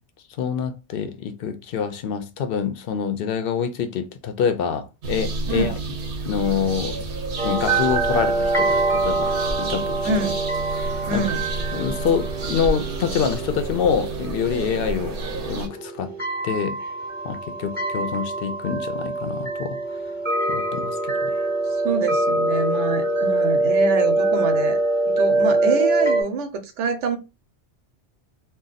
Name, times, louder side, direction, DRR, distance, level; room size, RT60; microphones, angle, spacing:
voice 1, 0.4-5.7 6.3-7.0 7.4-9.3 9.6-10.1 10.7-11.2 11.7-15.2 15.4-16.1 16.4-16.8 17.2-19.8 20.5-20.9 21.2-21.3, left 7 dB, 65° left, 0.7 m, -26 dB
sound 1, 5.0-15.7, right 3 dB, 55° right, 0.8 m, -30 dB
sound 2, 7.4-26.2, right 2 dB, 10° right, 1.0 m, -24 dB
voice 2, 10.0-10.4 11.1-11.4 21.7-24.8 25.1-27.2, right 4 dB, 90° right, 1.0 m, -26 dB
2.6 x 2.2 x 3.9 m
omnidirectional pair, 1.2 m